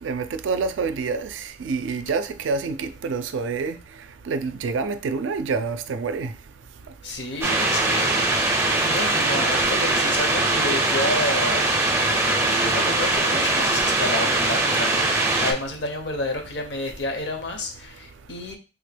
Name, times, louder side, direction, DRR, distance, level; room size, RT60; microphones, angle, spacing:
voice 1, 0.0-3.8 4.3-6.3 14.1-14.3, right 4 dB, 80° right, 0.4 m, -27 dB
voice 2, 7.0-8.2 8.8-11.9 12.6-15.1 15.4-18.6, left 2 dB, 65° left, 0.7 m, -30 dB
sound 1, 7.4-15.5, right 2 dB, 15° right, 0.4 m, -21 dB
3.4 x 2.2 x 3.3 m
head